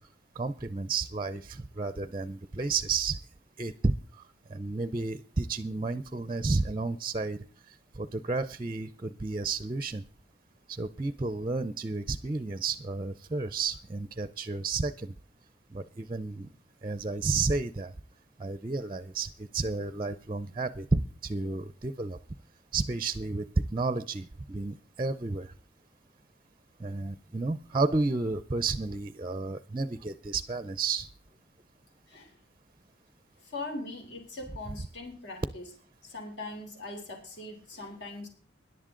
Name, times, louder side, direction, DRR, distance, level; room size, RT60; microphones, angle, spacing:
voice 1, 0.4-3.2 3.6-3.9 4.5-7.4 7.7-10.0 10.7-15.1 15.7-16.5 16.8-17.9 18.4-22.2 22.7-25.5 26.8-31.1, right 3 dB, 25° right, 15 dB, 0.5 m, -31 dB
voice 2, 33.4-35.7 36.0-38.3, left 2 dB, 70° left, 2 dB, 3.5 m, -41 dB
18.0 x 11.0 x 3.8 m, 0.41 s
head